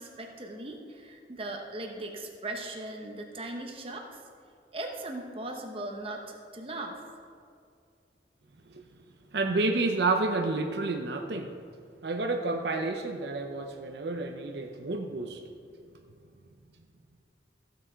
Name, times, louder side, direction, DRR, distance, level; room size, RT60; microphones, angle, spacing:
voice 1, 0.0-4.2 4.7-7.0, right 2 dB, 30° right, 2 dB, 1.0 m, -38 dB
voice 2, 9.3-11.5 12.0-15.4, right 3 dB, 70° right, 3 dB, 0.7 m, -30 dB
14.5 x 6.3 x 4.5 m, 2.3 s
head